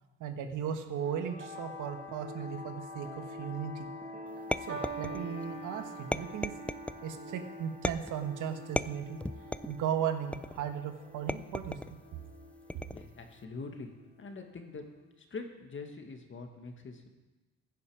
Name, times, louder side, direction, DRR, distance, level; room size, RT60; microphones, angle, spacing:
voice 1, 0.2-3.9 4.6-6.5 7.0-9.2 9.7-12.0, right 8 dB, 85° right, 7 dB, 1.4 m, -36 dB
sound 1, 0.9-15.0, left 2 dB, 30° right, 2.2 m, -47 dB
sound 2, 4.5-5.4 6.1-7.0 7.8-8.3 8.8-9.8 10.3-10.7 11.3-11.9 12.7-13.2, left 1 dB, 5° left, 0.3 m, -35 dB
sound 3, 4.7-11.2 12.1-12.5, right 6 dB, 50° right, 2.0 m, -46 dB
voice 2, 12.9-13.9 14.2-14.9 15.2-17.1, left 3 dB, 40° left, 5 dB, 1.9 m, -44 dB
16.0 x 9.6 x 5.0 m, 1.1 s
cardioid pair, 90°, 30 cm